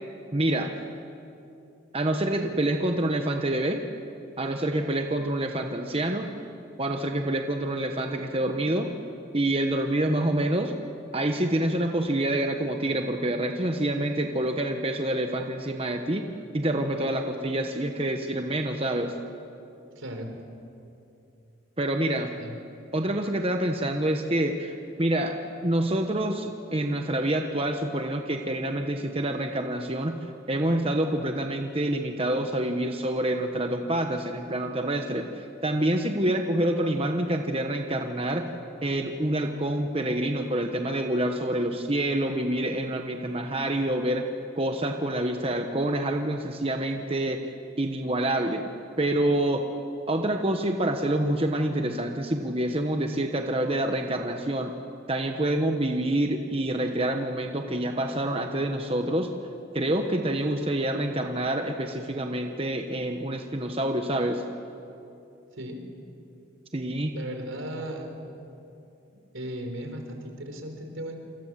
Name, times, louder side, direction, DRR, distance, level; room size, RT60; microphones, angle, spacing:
voice 1, 0.3-0.7 1.9-3.8 4.4-6.3 6.8-8.9 9.3-10.7 11.1-16.2 16.5-19.1 21.8-22.3 22.9-25.4 25.6-30.2 30.5-38.5 38.8-44.2 44.6-47.4 47.8-48.6 49.0-49.6 50.1-54.7 55.1-59.3 59.7-64.4 66.7-67.1, right 1 dB, 30° right, 4 dB, 1.1 m, -27 dB
voice 2, 20.0-20.3 22.4-22.6 65.5-65.8 67.1-68.1 69.3-71.2, right 1 dB, 75° right, 4 dB, 4.1 m, -36 dB
28.0 x 25.0 x 7.6 m, 2.8 s
head